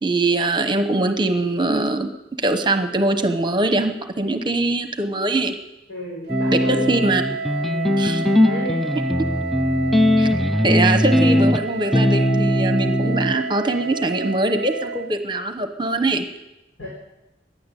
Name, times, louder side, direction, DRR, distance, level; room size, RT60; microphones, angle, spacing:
voice 1, 0.0-2.1 2.4-5.6 6.5-7.2 8.0-8.2 10.2-10.3 10.6-16.2, right 2 dB, 25° right, 7 dB, 1.0 m, -22 dB
voice 2, 5.9-7.0 7.6-7.9 8.4-8.8 16.8-16.9, left 1 dB, 90° left, -4 dB, 4.6 m, -33 dB
sound 1, 6.3-13.4, left 1 dB, ahead, 0.4 m, -19 dB
Wind instrument woodwind instrument, 6.3-15.2, right 4 dB, 60° right, 0.5 m, -30 dB
15.5 x 10.5 x 8.4 m, 0.96 s
head